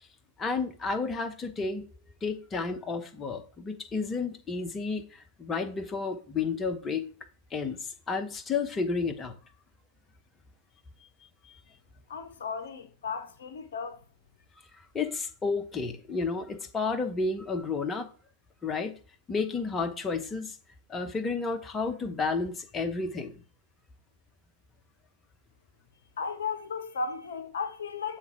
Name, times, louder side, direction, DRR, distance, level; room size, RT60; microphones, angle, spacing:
voice 1, 0.4-1.9 2.2-7.1 7.5-9.3 14.7-18.1 18.6-18.9 19.3-20.6 20.9-23.4, left 4 dB, 20° left, 0.8 m, -31 dB
voice 2, 12.1-14.0 26.2-28.2, left 5 dB, 65° left, 0.6 m, -35 dB
7.3 x 3.6 x 4.5 m
figure-of-eight pair, 90°, 0 cm